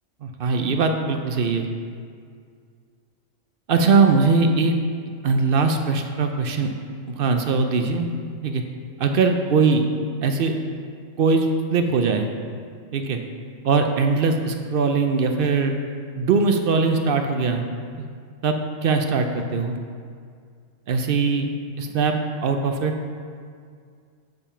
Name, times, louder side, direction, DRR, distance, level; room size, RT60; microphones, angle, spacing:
voice 1, 0.2-1.7 3.7-4.7 5.2-6.7 7.1-8.2 8.4-8.6 9.0-9.8 10.2-10.5 11.2-12.3 12.9-13.2 13.6-15.8 16.1-17.7 18.4-18.6 18.8-19.8 20.9-21.5 21.8-22.1 22.4-22.9, right 4 dB, 55° right, 5 dB, 0.6 m, -21 dB
7.2 x 5.3 x 5.5 m, 2.2 s
omnidirectional pair, 1.4 m